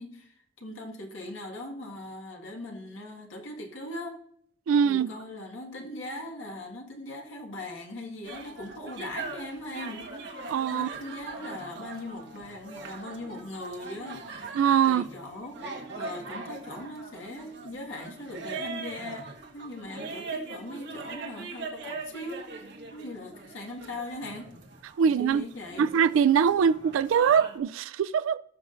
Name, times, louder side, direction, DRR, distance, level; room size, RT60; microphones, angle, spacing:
voice 1, 0.0-4.2 4.8-14.4 14.9-15.6 15.9-24.6 25.0-25.9, left 1 dB, 75° left, 1.9 m, -40 dB
voice 2, 4.7-5.1 10.5-10.9 14.5-15.0 25.0-25.4 25.8-28.4, right 7 dB, 80° right, 0.3 m, -23 dB
sound 1, 8.2-27.6, right 3 dB, 60° right, 1.6 m, -41 dB
18.0 x 6.2 x 2.6 m
head